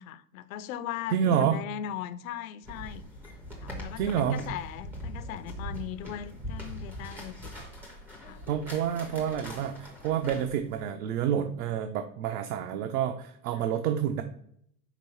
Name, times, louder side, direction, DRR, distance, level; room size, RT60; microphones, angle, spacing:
voice 1, 0.0-3.0 3.6-7.5 8.2-8.4, left 10 dB, 65° left, 0.6 m, -39 dB
voice 2, 1.1-1.6 4.0-4.4 8.5-14.2, right 9 dB, 70° right, 0.7 m, -28 dB
sound 1, 2.6-10.8, equal, 5° right, 0.4 m, -42 dB
5.2 x 3.5 x 5.5 m
supercardioid pair, 160°, 46 cm